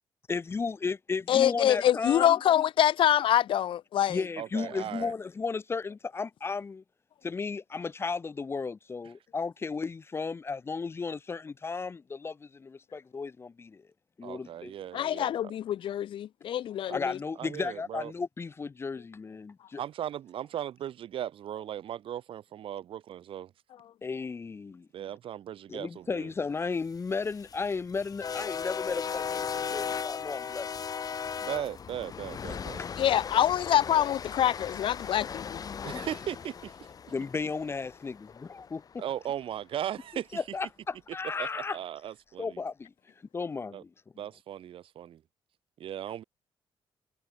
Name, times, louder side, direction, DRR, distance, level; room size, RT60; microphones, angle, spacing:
voice 1, 0.3-2.4 4.1-6.8 7.2-13.9 14.2-14.7 16.9-19.8 24.0-24.9 25.7-30.7 32.5-32.9 35.9-36.1 37.1-38.8 40.3-41.8 42.4-42.9 43.3-43.9, left 4 dB, 25° left, 1.0 m, -34 dB
voice 2, 1.3-4.2 14.9-17.2 33.0-35.6, left 11 dB, 65° left, 0.8 m, -25 dB
voice 3, 4.4-5.1 14.2-15.3 16.9-17.0 17.4-18.1 19.8-23.5 24.9-26.3 31.4-32.8 35.8-36.7 39.0-40.4 41.4-42.6 43.7-43.8 44.2-45.2 45.8-46.2, right 10 dB, 70° right, 6.6 m, -37 dB
sound 1, 27.0-39.1, left 7 dB, 40° left, 3.0 m, -37 dB
cardioid pair, 145°, 9 cm